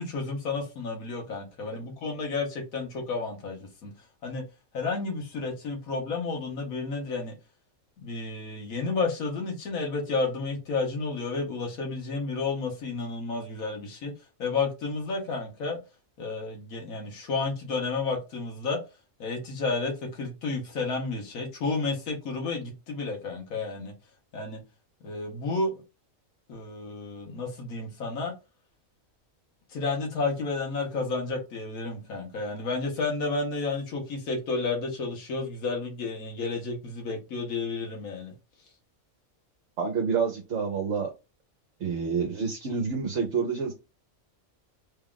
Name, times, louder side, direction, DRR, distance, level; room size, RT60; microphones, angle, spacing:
voice 1, 0.0-3.9 4.2-4.4 4.7-7.3 8.0-14.1 14.4-15.8 16.2-18.8 19.2-23.9 24.3-24.6 25.0-25.7 26.5-28.3 29.7-38.3, left 3 dB, 85° left, 1.5 m, -31 dB
voice 2, 39.8-41.1 41.8-43.7, right 5 dB, 60° right, 1.1 m, -28 dB
3.5 x 2.4 x 3.7 m
omnidirectional pair, 1.4 m